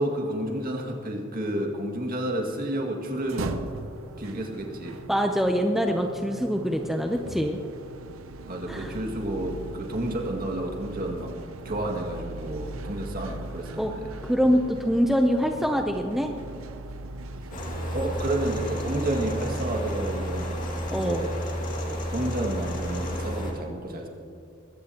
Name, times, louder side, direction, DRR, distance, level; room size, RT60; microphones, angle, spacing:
voice 1, 0.0-3.6 4.2-5.0 8.5-11.3 11.6-13.9 17.9-21.3 21.9-24.1, right 1 dB, 45° right, 1 dB, 2.1 m, -30 dB
sound 1, 3.1-21.3, right 2 dB, 85° right, 0.7 m, -40 dB
voice 2, 5.1-7.6 8.7-9.0 13.8-13.9 14.2-16.3 20.9-21.2, equal, ahead, 3 dB, 0.6 m, -24 dB
sound 2, 17.5-23.5, equal, 40° left, 2.2 m, -31 dB
22.0 x 16.0 x 2.9 m, 2.4 s
head